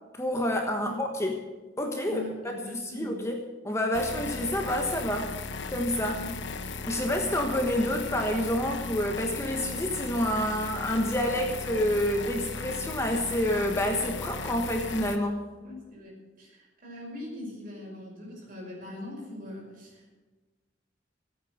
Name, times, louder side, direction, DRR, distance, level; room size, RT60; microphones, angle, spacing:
voice 1, 0.2-1.4 1.8-2.2 2.7-3.4 3.6-5.3 5.7-6.2 6.9-15.4, left 1 dB, 15° left, 2 dB, 1.3 m, -28 dB
voice 2, 2.0-3.2 6.1-6.3 15.6-20.2, left 1 dB, 45° right, -2 dB, 5.6 m, -42 dB
sound 1, 3.9-15.2, left 4 dB, 70° left, 0.9 m, -37 dB
15.5 x 8.9 x 7.9 m, 1.2 s
head